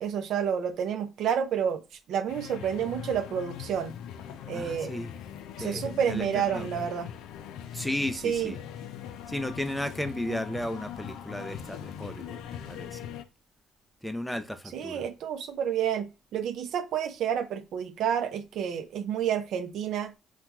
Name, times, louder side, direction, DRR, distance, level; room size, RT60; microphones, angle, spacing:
voice 1, 0.0-1.8 2.1-3.9 4.5-5.0 5.6-7.1 8.2-8.5 14.7-20.1, right 8 dB, 70° right, 0.5 m, -29 dB
sound 1, 2.3-13.2, left 9 dB, 75° left, 0.4 m, -41 dB
voice 2, 4.5-5.1 5.6-6.7 7.7-8.6 9.3-13.1 14.0-15.0, left 1 dB, 5° left, 0.5 m, -34 dB
2.9 x 2.3 x 3.5 m
supercardioid pair, 70°, 0 cm